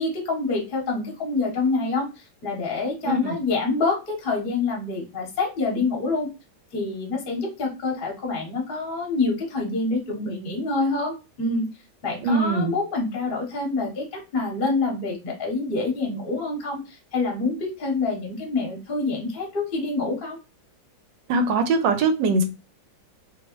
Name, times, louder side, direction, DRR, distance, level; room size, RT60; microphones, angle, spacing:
voice 1, 0.0-6.3 6.7-11.6 12.0-20.4, left 3 dB, 35° left, 1.0 m, -26 dB
voice 2, 3.1-3.4 12.2-12.7 21.3-22.4, right 3 dB, 75° right, 1.1 m, -21 dB
3.0 x 2.8 x 3.0 m
omnidirectional pair, 2.1 m